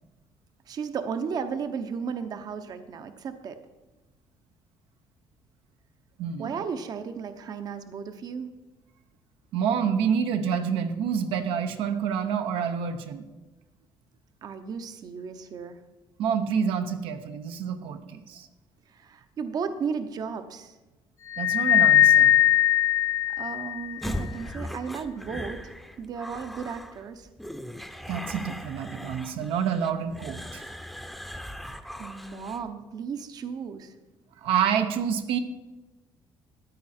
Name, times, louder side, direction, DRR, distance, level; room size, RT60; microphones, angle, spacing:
voice 1, 0.7-3.6 6.4-8.5 14.4-15.8 18.9-20.7 23.4-27.3 31.3-31.4 32.0-33.9, right 6 dB, 45° right, 8 dB, 0.7 m, -34 dB
voice 2, 6.2-6.5 9.5-13.2 16.2-18.5 21.4-22.3 28.1-30.6 34.4-35.4, right 7 dB, 90° right, 7 dB, 0.9 m, -28 dB
sound 1, 21.3-24.0, left 11 dB, 35° left, 0.4 m, -20 dB
sound 2, 24.0-32.7, equal, ahead, 0.7 m, -39 dB
13.5 x 9.5 x 4.3 m, 1.1 s
cardioid pair, 145°, 9 cm